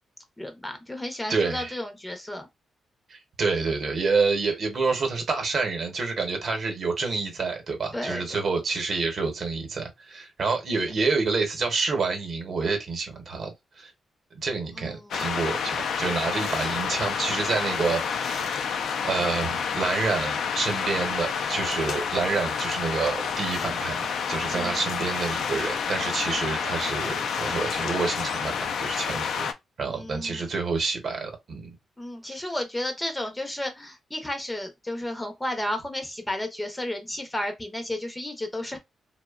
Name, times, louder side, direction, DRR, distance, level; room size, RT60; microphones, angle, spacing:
voice 1, 0.4-2.5 7.9-8.4 14.8-15.2 24.5-24.8 30.0-30.4 32.0-38.8, left 1 dB, 15° left, 0.5 m, -33 dB
voice 2, 1.3-1.7 3.1-13.5 13.8-13.9 14.4-18.7 19.0-29.5 29.8-31.7 32.3-32.4, right 4 dB, 55° right, 0.8 m, -28 dB
sound 1, 15.1-29.5, left 6 dB, 80° left, 0.4 m, -29 dB
2.7 x 2.1 x 2.3 m
cardioid pair, 100°, 0 cm